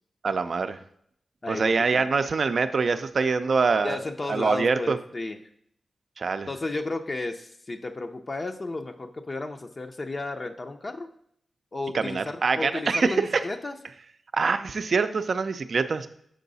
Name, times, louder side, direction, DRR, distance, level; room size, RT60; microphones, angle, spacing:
voice 1, 0.2-0.8 1.5-4.0 4.3-5.0 6.2-6.5 11.9-13.4 14.3-16.1, right 4 dB, 65° right, 10 dB, 0.4 m, -24 dB
voice 2, 1.4-2.1 3.8-5.4 6.5-11.1 11.7-13.7, left 2 dB, 45° left, 4 dB, 0.5 m, -33 dB
6.4 x 4.6 x 4.0 m, 0.69 s
cardioid pair, 40°, 0 cm